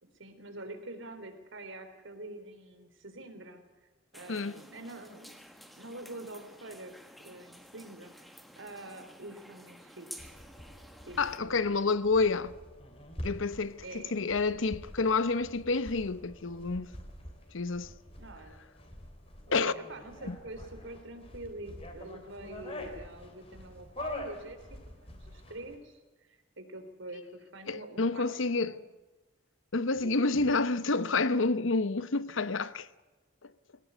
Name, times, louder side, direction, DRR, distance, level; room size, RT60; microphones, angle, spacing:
voice 1, 0.0-3.6 4.1-5.4 5.8-7.0 7.2-10.4 11.1-11.8 13.8-14.1 18.2-18.6 19.5-24.6 25.0-28.8 30.0-30.5, right 1 dB, 75° right, 3.7 m, -45 dB
sound 1, 4.1-11.4, equal, ahead, 1.5 m, -52 dB
voice 2, 4.3-4.6 11.2-12.5 13.2-16.9 17.5-17.9 19.5-19.7 20.3-20.4 27.7-28.8 29.7-32.9 33.4-33.5, left 3 dB, 80° left, 0.9 m, -29 dB
sound 2, 10.2-25.8, left 1 dB, 30° left, 3.5 m, -46 dB
22.0 x 18.5 x 8.3 m
head